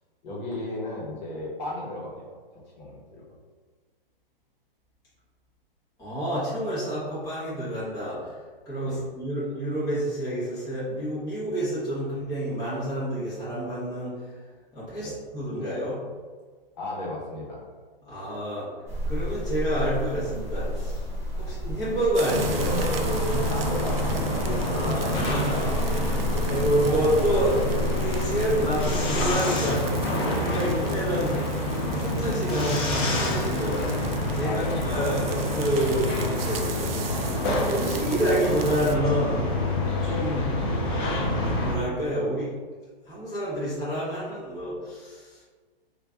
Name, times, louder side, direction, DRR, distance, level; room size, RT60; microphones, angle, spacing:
voice 1, 0.2-2.2 2.8-3.2 8.8-9.0 15.0-15.2 16.8-17.6 21.3-21.5 23.5-25.3 26.9-27.2 30.5-30.8 34.4-34.9, left 1 dB, 50° left, -5 dB, 1.2 m, -35 dB
voice 2, 6.0-8.4 8.6-14.4 14.7-16.0 18.0-18.7 19.1-21.1 21.4-22.9 24.7-29.9 30.3-31.4 31.9-34.1 34.3-36.8 37.7-39.5 40.0-40.4 41.5-42.5 43.1-45.4, right 1 dB, 10° left, -11 dB, 1.0 m, -28 dB
sound 1, 18.9-29.4, equal, 10° right, 0.7 m, -31 dB
Sizzle Milk burning in a pan, 22.1-39.0, right 8 dB, 75° right, 0.5 m, -41 dB
sound 2, 22.3-41.8, left 1 dB, 30° left, 0.5 m, -27 dB
3.2 x 2.6 x 3.3 m, 1.5 s
hypercardioid pair, 145°, 29 cm